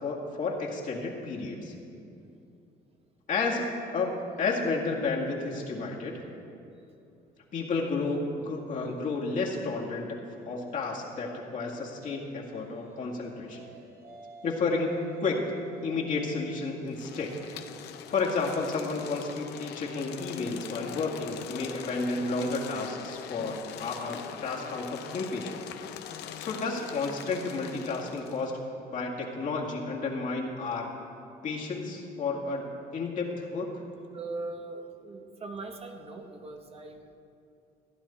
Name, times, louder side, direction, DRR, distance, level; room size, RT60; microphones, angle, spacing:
voice 1, 0.0-1.7 3.3-3.7 3.9-6.2 7.5-10.2 10.5-13.7 14.4-15.4 15.8-17.3 18.1-25.6 26.4-28.5 28.9-30.9 31.4-33.7, left 3 dB, 50° left, -2 dB, 2.1 m, -31 dB
sound 1, 12.5-16.9 18.3-23.7, right 1 dB, 75° right, 2.0 m, -53 dB
sound 2, 16.9-28.5, left 9 dB, 80° left, 0.7 m, -42 dB
voice 2, 34.1-37.2, right 3 dB, 35° right, 4 dB, 1.1 m, -40 dB
15.5 x 10.5 x 4.4 m, 2.6 s
cardioid pair, 110°, 17 cm